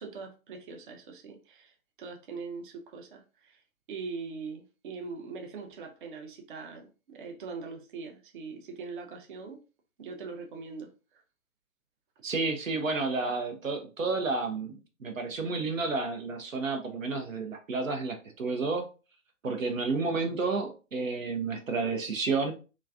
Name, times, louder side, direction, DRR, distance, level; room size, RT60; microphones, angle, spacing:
voice 1, 0.0-3.6 3.9-9.6 10.0-11.2 20.0-20.2, right 4 dB, 40° right, 0.6 m, -42 dB
voice 2, 12.2-18.9 19.4-22.5, right 3 dB, 75° right, 0.8 m, -31 dB
3.0 x 2.4 x 2.4 m
figure-of-eight pair, 120°, 40 cm